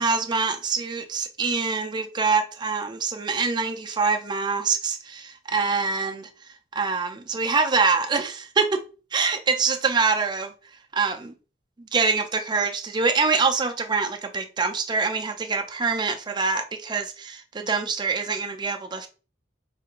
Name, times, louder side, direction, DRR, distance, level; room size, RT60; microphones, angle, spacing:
voice 1, 0.0-6.3 6.7-8.8 9.1-10.5 10.9-11.3 11.9-19.1, right 4 dB, 25° right, 0.4 m, -25 dB
4.5 x 2.4 x 2.9 m
head